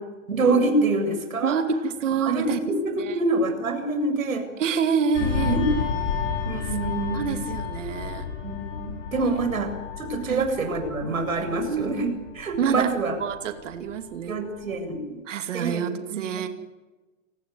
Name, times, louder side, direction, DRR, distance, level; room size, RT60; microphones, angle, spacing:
voice 1, 0.3-1.6 2.2-4.5 5.2-5.6 6.4-7.4 8.4-13.1 14.3-15.2 15.5-15.8 16.1-16.5, right 3 dB, 80° right, 6 dB, 7.7 m, -26 dB
voice 2, 1.4-2.6 3.0-3.2 4.6-5.6 7.1-8.2 9.2-9.4 10.3-10.5 11.7-12.0 12.6-12.9 13.2-14.4 15.3-16.5, right 7 dB, 65° right, 8 dB, 2.6 m, -27 dB
sound 1, 5.1-14.2 14.5-14.8, left 6 dB, 60° left, 6.4 m, -31 dB
29.5 x 20.0 x 9.5 m, 1.2 s
hypercardioid pair, 120°, 41 cm